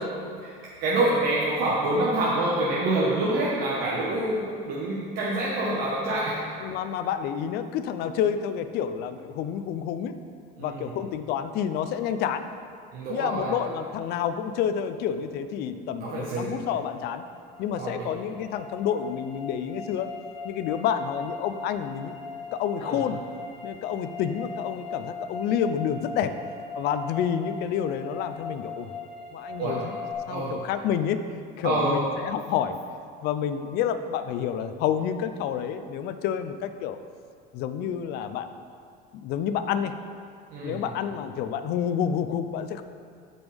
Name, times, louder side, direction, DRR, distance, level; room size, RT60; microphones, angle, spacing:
voice 1, 0.8-6.4 10.6-10.9 12.9-13.5 16.0-16.6 17.7-18.1 22.8-23.0 29.6-29.8 30.3-30.5 31.6-32.0 40.5-40.8, right 2 dB, 55° right, -6 dB, 1.3 m, -26 dB
voice 2, 6.6-10.1 10.6-12.4 13.1-17.2 17.6-20.1 20.4-22.1 22.5-23.2 23.6-26.3 26.7-28.9 29.3-30.0 30.3-31.2 31.6-32.8 33.2-37.0 37.5-38.5 39.2-39.9 40.6-42.8, left 8 dB, 60° left, 10 dB, 0.5 m, -29 dB
sound 1, 17.0-30.1, left 3 dB, 35° left, 1.3 m, -39 dB
14.0 x 5.3 x 3.5 m, 2.3 s
cardioid pair, 155°, 19 cm